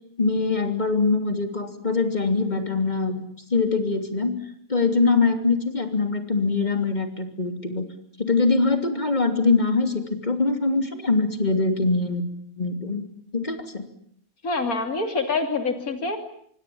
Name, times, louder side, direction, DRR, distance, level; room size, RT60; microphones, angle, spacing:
voice 1, 0.2-3.2 3.5-4.4 4.7-7.9 8.2-12.3 12.6-13.1 13.3-13.9, left 3 dB, 30° left, 6 dB, 3.2 m, -23 dB
voice 2, 14.4-16.2, left 3 dB, 85° left, 6 dB, 3.3 m, -26 dB
26.5 x 23.5 x 8.6 m, 0.66 s
omnidirectional pair, 1.5 m